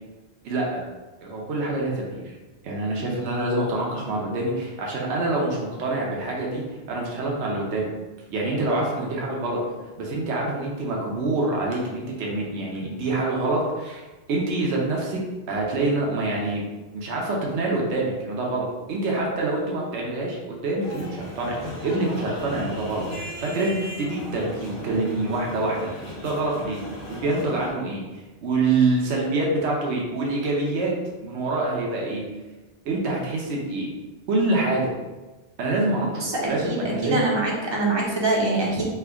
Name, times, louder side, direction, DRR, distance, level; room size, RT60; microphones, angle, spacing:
voice 1, 0.4-0.8 1.2-2.3 2.6-7.9 8.3-9.6 10.0-15.2 15.5-16.6 16.9-26.8 27.1-28.0 28.4-30.9 31.2-32.3 32.8-33.9 34.3-34.9 35.6-37.2, right 2 dB, 80° right, -2 dB, 1.0 m, -26 dB
sound 1, 20.8-27.7, left 1 dB, 25° left, 1.0 m, -37 dB
voice 2, 36.2-38.9, right 2 dB, 30° right, -3 dB, 0.6 m, -24 dB
3.3 x 2.1 x 3.4 m, 1.2 s
omnidirectional pair, 1.1 m